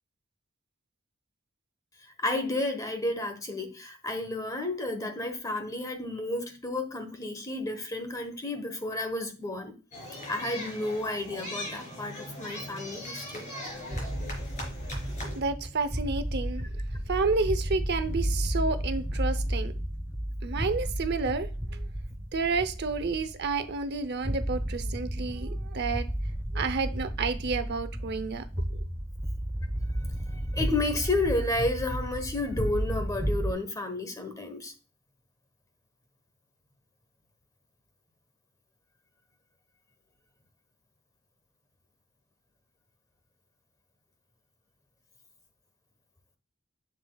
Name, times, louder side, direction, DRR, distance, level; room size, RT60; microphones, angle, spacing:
voice 1, 2.2-9.7 10.3-13.5 30.3-34.7, left 2 dB, 15° left, 1.2 m, -31 dB
sound 1, 9.9-15.4, left 1 dB, 35° left, 4.0 m, -40 dB
Fleur Schrank, 13.9-33.5, equal, 10° right, 0.9 m, -32 dB
voice 2, 15.4-16.7 17.1-19.7 20.4-21.9 22.3-26.1 26.5-28.4 28.7-28.8, right 4 dB, 55° right, 0.8 m, -30 dB
7.3 x 6.9 x 2.4 m
head